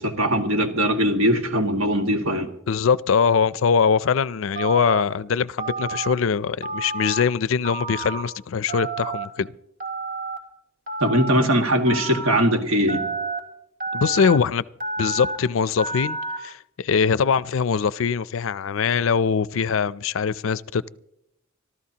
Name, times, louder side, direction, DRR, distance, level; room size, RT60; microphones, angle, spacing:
voice 1, 0.0-2.5 11.0-13.0, equal, 80° right, 1.9 m, -21 dB
voice 2, 2.7-9.5 13.9-14.6 15.0-20.9, left 6 dB, 70° left, 0.4 m, -22 dB
Telephone, 4.6-5.0 5.6-6.1 6.6-7.2 7.6-8.2 8.7-9.2 9.8-10.4 10.9-11.4 11.9-12.4 12.9-13.4 13.8-14.4 14.8-15.4 15.8-16.4, right 3 dB, 45° right, 3.1 m, -30 dB
25.5 x 14.0 x 2.9 m
head